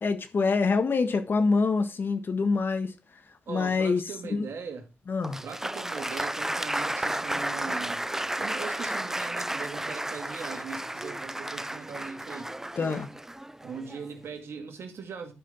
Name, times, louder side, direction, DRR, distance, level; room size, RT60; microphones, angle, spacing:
voice 1, 0.0-2.9 3.5-4.0 5.1-5.4 12.8-13.1, left 4 dB, 55° left, 1.5 m, -25 dB
voice 2, 3.5-4.9 5.4-8.0 8.4-12.5 13.6-15.3, right 6 dB, 70° right, 1.9 m, -40 dB
Applause, 5.2-14.2, right 1 dB, 10° right, 0.5 m, -33 dB
12.0 x 5.1 x 4.1 m
cardioid pair, 60°, 4 cm